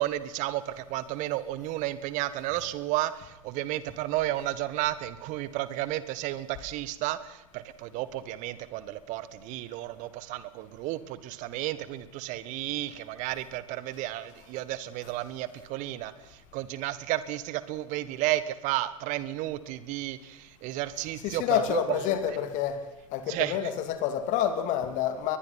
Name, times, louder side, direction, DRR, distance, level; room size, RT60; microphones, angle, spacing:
voice 1, 0.0-22.0 23.3-23.6, right 15 dB, 45° right, 16 dB, 1.7 m, -32 dB
voice 2, 21.2-22.8 23.1-25.4, left 10 dB, 45° left, 9 dB, 2.8 m, -28 dB
23.0 x 20.5 x 5.9 m, 0.95 s
figure-of-eight pair, 85°, 17 cm